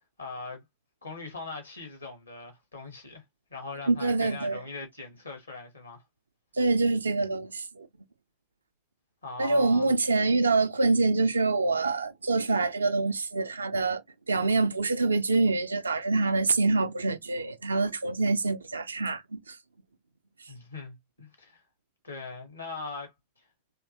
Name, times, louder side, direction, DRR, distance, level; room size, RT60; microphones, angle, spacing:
voice 1, 0.2-0.6 1.0-3.2 3.5-6.0 9.2-9.9 20.5-21.6 22.0-23.1 23.4-23.5, left 3 dB, 85° left, 1.9 m, -41 dB
voice 2, 3.9-4.6 6.6-7.9 9.4-14.0 14.3-19.6, right 3 dB, 80° right, 0.5 m, -25 dB
3.4 x 3.3 x 3.0 m
figure-of-eight pair, 80°, 0 cm